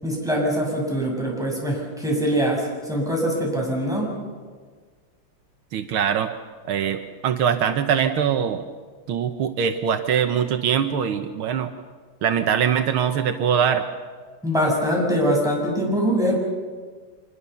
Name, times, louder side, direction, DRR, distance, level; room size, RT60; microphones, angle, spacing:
voice 1, 0.0-4.1 14.4-16.3, equal, ahead, -2 dB, 6.9 m, -23 dB
voice 2, 5.7-6.3 6.6-8.6 9.1-11.7 12.2-13.8, right 8 dB, 75° right, 7 dB, 1.8 m, -22 dB
26.0 x 21.5 x 7.0 m, 1.5 s
omnidirectional pair, 2.3 m